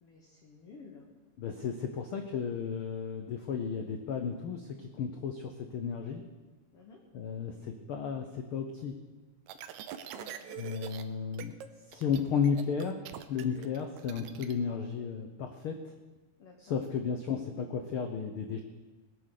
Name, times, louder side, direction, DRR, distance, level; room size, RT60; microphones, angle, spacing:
voice 1, 0.0-1.1 6.7-7.0 9.9-10.6 16.4-16.8, left 4 dB, 50° left, -1 dB, 2.2 m, -53 dB
voice 2, 1.4-6.2 7.1-9.0 10.6-11.5 11.9-15.9 16.6-18.6, left 6 dB, 80° left, 5 dB, 1.2 m, -34 dB
sound 1, 9.5-11.0 11.3-11.7 11.9-14.5, right 10 dB, 75° right, 1.9 m, -44 dB
19.5 x 8.2 x 6.6 m, 1.2 s
omnidirectional pair, 3.7 m